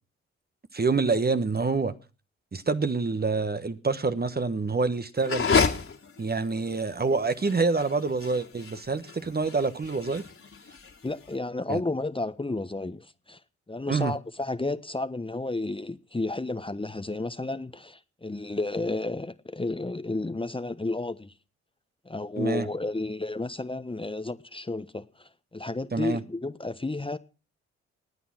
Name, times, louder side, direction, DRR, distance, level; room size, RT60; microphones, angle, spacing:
voice 1, 0.7-1.9 2.5-5.5 6.2-10.2 11.7-11.8 13.9-14.1 22.4-22.7 25.9-26.2, right 4 dB, 30° right, 1.4 m, -27 dB
sound 1, 5.2-11.3, left 5 dB, 45° left, 2.5 m, -30 dB
voice 2, 11.0-13.4 13.7-21.3 22.0-27.2, left 2 dB, 15° left, 1.2 m, -32 dB
19.0 x 9.4 x 6.0 m
hypercardioid pair, 45°, 31 cm